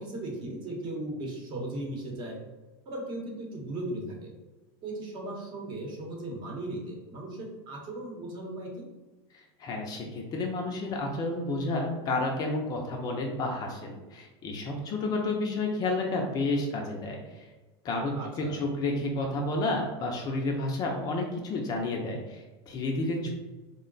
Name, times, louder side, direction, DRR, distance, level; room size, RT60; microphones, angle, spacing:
voice 1, 0.0-2.4 2.8-4.3 4.8-8.8 18.2-18.6 23.2-23.3, right 1 dB, 35° right, 0 dB, 0.9 m, -37 dB
voice 2, 9.3-17.4 17.8-23.2, left 2 dB, 30° left, 1 dB, 0.5 m, -31 dB
3.7 x 2.1 x 3.8 m, 1.2 s
supercardioid pair, 145°, 14 cm